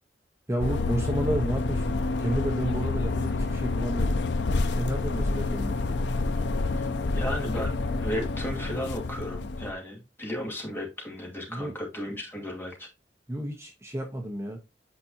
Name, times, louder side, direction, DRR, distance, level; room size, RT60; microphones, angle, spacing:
voice 1, 0.5-4.2 4.6-5.8 11.5-11.7 13.3-14.6, right 1 dB, 15° right, 1.0 m, -31 dB
sound 1, 0.6-9.7, left 3 dB, 75° left, 0.6 m, -28 dB
voice 2, 7.1-12.9, equal, 15° left, 2.3 m, -35 dB
8.6 x 5.2 x 2.8 m
head